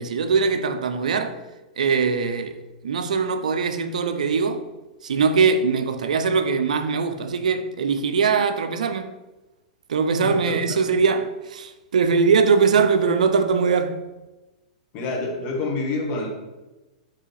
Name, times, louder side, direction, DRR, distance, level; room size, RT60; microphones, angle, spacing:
voice 1, 0.0-1.4 1.8-2.6 2.8-4.6 5.0-9.1 9.9-14.0, right 5 dB, 80° right, 0.4 m, -21 dB
voice 2, 10.2-10.6 10.9-11.0 14.9-16.3, left 3 dB, 40° left, 1.3 m, -27 dB
4.4 x 3.3 x 3.2 m
hypercardioid pair, 115°, 4 cm